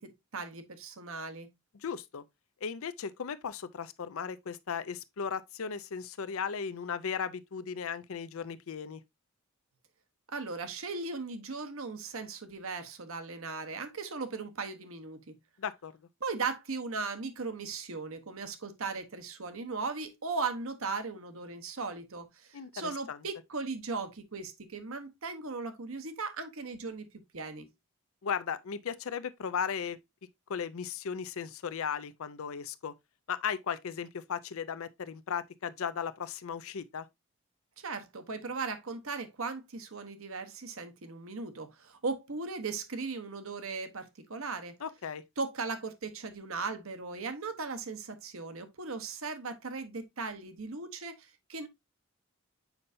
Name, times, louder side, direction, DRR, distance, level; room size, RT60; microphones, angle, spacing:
voice 1, 0.0-1.5 10.3-15.3 16.2-27.1 27.3-27.7 37.8-44.8 45.4-51.7, right 4 dB, 70° right, 1.0 m, -38 dB
voice 2, 1.7-2.2 2.6-9.0 15.6-15.9 22.5-23.2 28.2-30.0 30.5-32.9 33.3-37.1 44.8-45.2, left 7 dB, 70° left, 0.5 m, -36 dB
7.0 x 5.4 x 2.6 m
head